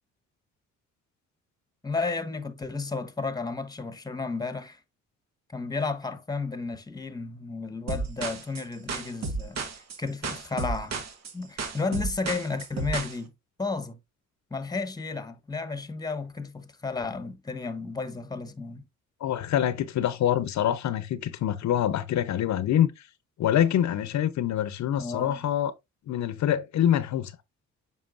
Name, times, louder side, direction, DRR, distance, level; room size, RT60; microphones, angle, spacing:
voice 1, 1.8-4.8 5.5-11.0 11.3-13.3 13.6-14.0 14.5-18.9 25.0-25.4, left 4 dB, 15° left, 1.1 m, -33 dB
sound 1, 7.9-13.2, right 3 dB, 60° right, 1.5 m, -33 dB
voice 2, 19.2-23.0 23.4-25.7 26.1-27.3, left 10 dB, 65° left, 0.8 m, -25 dB
7.7 x 5.5 x 2.5 m
cardioid pair, 90°, 30 cm